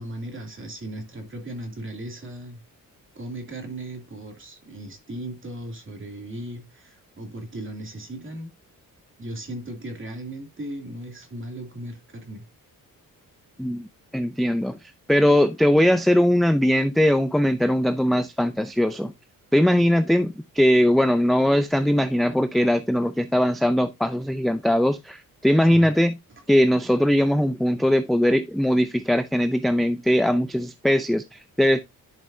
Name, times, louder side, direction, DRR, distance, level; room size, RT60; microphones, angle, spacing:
voice 1, 0.0-2.6 3.1-8.5 9.2-12.4 25.7-25.9, right 1 dB, 35° right, 2.7 m, -37 dB
voice 2, 14.1-14.8 15.1-19.1 19.5-26.2 26.5-31.8, equal, ahead, 0.4 m, -20 dB
11.0 x 5.3 x 2.7 m
cardioid pair, 115°, 36 cm